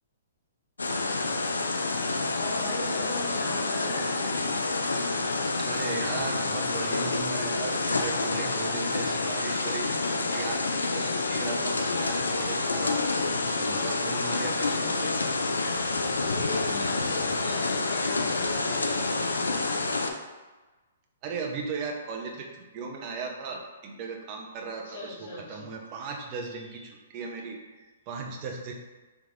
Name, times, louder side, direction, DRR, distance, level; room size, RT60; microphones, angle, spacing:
sound 1, 0.8-20.1, left 3 dB, 85° left, 0.4 m, -28 dB
voice 1, 2.4-4.4 14.0-15.3 16.2-19.7 24.7-25.7, left 1 dB, 60° left, -6 dB, 1.5 m, -39 dB
voice 2, 5.6-13.0 13.6-15.2 17.4-17.5 21.2-28.7, right 4 dB, 35° right, 1 dB, 0.7 m, -37 dB
3.5 x 3.1 x 3.8 m, 1.2 s
hypercardioid pair, 125°, 0 cm